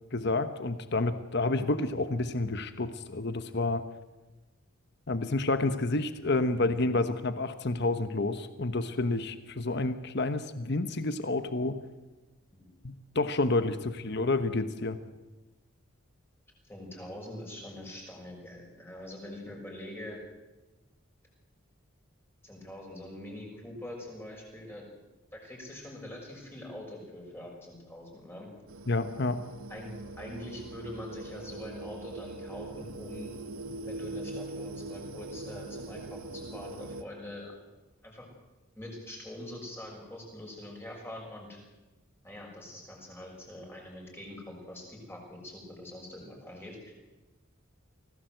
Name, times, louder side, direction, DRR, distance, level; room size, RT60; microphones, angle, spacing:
voice 1, 0.1-3.8 5.1-11.8 12.8-15.0 28.9-29.4, left 2 dB, 55° left, 11 dB, 1.1 m, -29 dB
voice 2, 16.6-20.2 22.4-24.9 25.3-28.5 29.7-33.3 33.9-37.6 38.0-38.3 38.8-41.6 42.2-46.9, left 1 dB, 10° left, -1 dB, 6.4 m, -44 dB
sound 1, 28.7-37.0, right 2 dB, 85° right, 1.1 m, -41 dB
25.0 x 17.5 x 7.9 m, 1.1 s
head